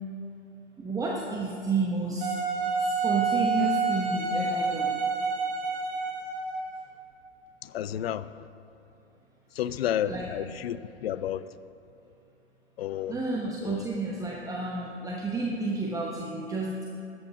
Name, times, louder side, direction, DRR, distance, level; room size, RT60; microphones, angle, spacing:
voice 1, 0.8-2.4 2.8-4.9 10.0-10.3 13.1-16.8, right 3 dB, 10° right, 0.9 m, -31 dB
Wind instrument woodwind instrument, 2.2-6.7, right 4 dB, 50° right, 2.4 m, -28 dB
voice 2, 7.6-8.3 9.6-11.5 12.8-13.2 13.6-13.9, left 11 dB, 60° left, 0.5 m, -31 dB
13.5 x 7.9 x 4.9 m
figure-of-eight pair, 105°, 35 cm